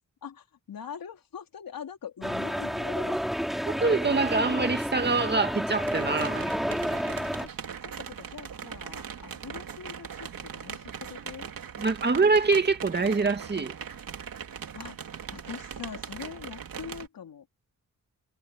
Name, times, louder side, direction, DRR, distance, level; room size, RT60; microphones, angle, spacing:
voice 1, 0.2-3.2 7.4-11.5 14.7-15.0 15.3-17.5, left 8 dB, 80° left, 3.8 m, -43 dB
sound 1, 2.2-7.5, equal, ahead, 2.8 m, -30 dB
voice 2, 3.6-6.5 11.8-13.8, right 4 dB, 30° right, 2.2 m, -25 dB
sound 2, 5.8-17.1, right 7 dB, 75° right, 3.1 m, -40 dB
wide cardioid pair, 125°, 34 cm